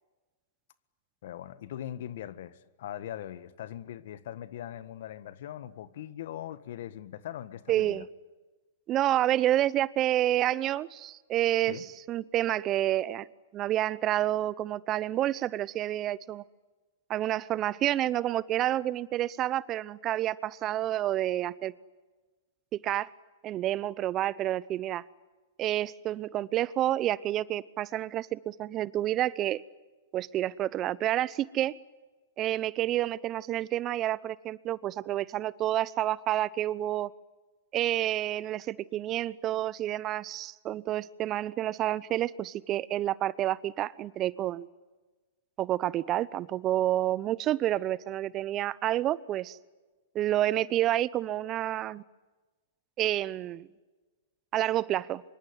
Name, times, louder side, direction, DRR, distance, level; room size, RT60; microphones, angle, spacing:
voice 1, 1.2-8.0 11.7-11.9, left 11 dB, 60° left, 1.5 m, -41 dB
voice 2, 7.7-8.1 8.9-13.3 13.5-16.4 17.1-21.7 22.7-23.1 23.4-25.0 25.6-29.6 30.1-31.8 32.4-37.1 37.7-44.7 45.6-49.6 50.1-52.0 53.0-53.7 54.5-55.2, right 13 dB, 30° right, 0.8 m, -29 dB
26.0 x 24.0 x 9.6 m
hypercardioid pair, 115°, 0 cm